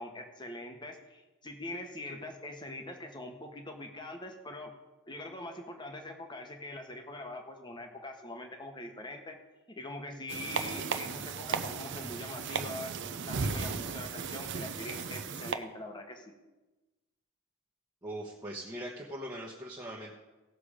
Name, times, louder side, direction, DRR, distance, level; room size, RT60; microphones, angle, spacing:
voice 1, 0.0-4.7 5.1-9.4 9.7-16.3, left 1 dB, 20° left, 4 dB, 1.3 m, -43 dB
sound 1, 10.3-15.5, right 5 dB, 55° right, 0.7 m, -35 dB
voice 2, 18.0-20.1, right 1 dB, 15° right, -3 dB, 1.2 m, -41 dB
17.0 x 6.8 x 5.0 m, 1.1 s
head